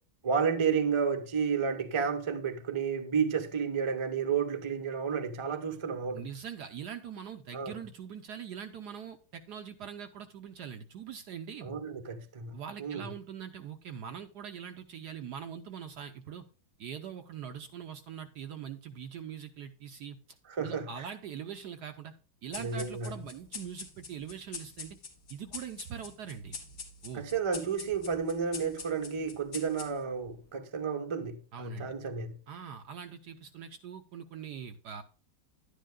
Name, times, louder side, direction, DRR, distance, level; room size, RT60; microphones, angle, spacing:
voice 1, 0.2-6.3 7.5-7.7 11.6-13.1 20.5-21.1 22.5-23.1 27.1-32.3, right 6 dB, 30° right, 0.5 m, -31 dB
voice 2, 6.1-11.7 12.5-16.5 16.8-22.1 22.4-25.0 25.3-26.6 27.0-27.2 31.5-31.9 32.5-35.0, right 8 dB, 65° right, 1.1 m, -42 dB
sound 1, 22.5-30.3, left 4 dB, 55° left, 2.2 m, -45 dB
11.0 x 10.0 x 2.2 m
omnidirectional pair, 2.3 m